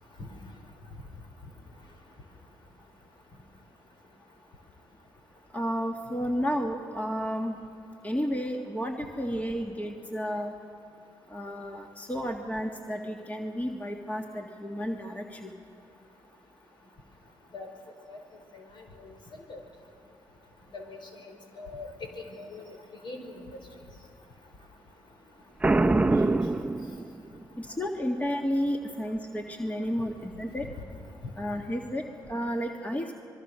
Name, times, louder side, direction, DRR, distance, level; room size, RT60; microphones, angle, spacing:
voice 1, 5.5-7.6 8.0-10.5 11.3-15.5 27.6-30.7 31.4-33.1, equal, 15° left, 2 dB, 2.0 m, -32 dB
voice 2, 20.7-21.9 22.1-22.6 23.0-23.3, left 3 dB, 55° left, 3 dB, 5.0 m, -42 dB
Boom, 25.6-27.5, right 2 dB, 15° right, 0.9 m, -24 dB
26.0 x 22.5 x 6.3 m, 2.5 s
supercardioid pair, 60°, 9 cm